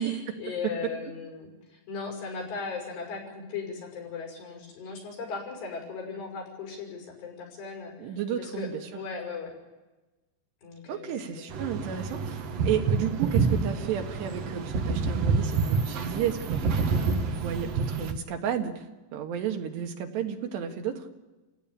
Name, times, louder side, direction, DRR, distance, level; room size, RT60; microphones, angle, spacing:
voice 1, 0.0-9.5 10.6-11.5, left 5 dB, 80° left, 2 dB, 7.9 m, -38 dB
voice 2, 8.0-8.8 10.9-18.7 19.1-21.1, right 8 dB, 85° right, 4 dB, 3.9 m, -32 dB
sound 1, 11.5-18.1, right 4 dB, 60° right, 1.7 m, -28 dB
29.5 x 16.5 x 8.9 m, 1.2 s
omnidirectional pair, 4.7 m